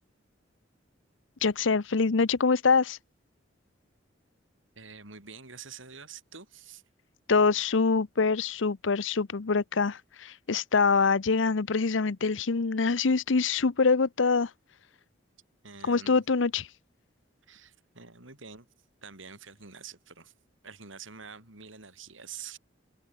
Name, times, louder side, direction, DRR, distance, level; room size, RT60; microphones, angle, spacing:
voice 1, 1.4-3.0 7.3-14.5 15.8-16.7, left 4 dB, 75° left, 0.7 m, -25 dB
voice 2, 4.8-6.8 15.6-16.2 17.5-18.7 19.0-20.3 20.6-22.6, right 6 dB, 90° right, 6.1 m, -46 dB
open air
head